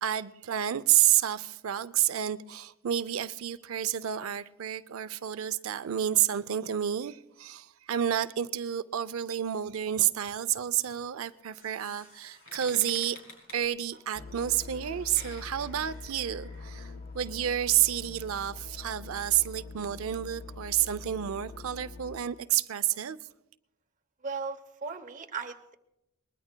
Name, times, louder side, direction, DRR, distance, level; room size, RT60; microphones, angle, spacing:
voice 1, 0.0-13.2 13.5-23.2, right 11 dB, 85° right, 0.5 m, -29 dB
sound 1, 11.3-16.9, left 2 dB, 75° left, 4.6 m, -51 dB
sound 2, 14.2-22.2, left 3 dB, 40° left, 0.6 m, -44 dB
voice 2, 24.2-25.7, right 4 dB, 40° right, 0.8 m, -37 dB
22.5 x 20.5 x 2.2 m
head